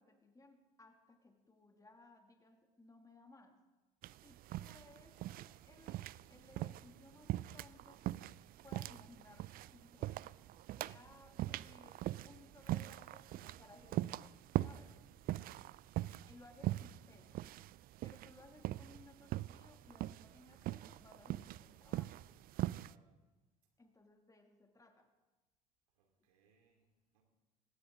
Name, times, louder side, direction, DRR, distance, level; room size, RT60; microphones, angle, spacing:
voice 1, 0.0-3.6 4.2-10.2 10.8-15.0 16.3-17.5 18.0-22.3 23.8-25.1, left 2 dB, 15° left, 4 dB, 2.6 m, -62 dB
sound 1, 4.0-22.9, right 15 dB, 50° right, 0.4 m, -42 dB
voice 2, 15.4-15.7 22.6-23.1 25.9-27.2, right 5 dB, 80° right, 3 dB, 2.7 m, -73 dB
19.5 x 16.5 x 3.8 m, 1.1 s
hypercardioid pair, 60°, 20 cm